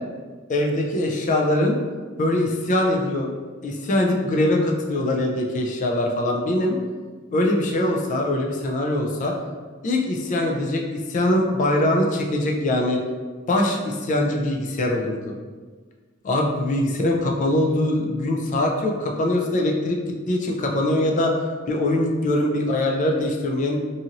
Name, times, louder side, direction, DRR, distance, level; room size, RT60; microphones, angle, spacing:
voice 1, 0.5-1.8 2.2-3.3 3.6-6.8 7.3-9.3 9.8-13.0 13.5-15.4 16.2-21.4 21.7-23.8, left 1 dB, 40° left, 1 dB, 0.3 m, -22 dB
2.7 x 2.5 x 2.8 m, 1.4 s
head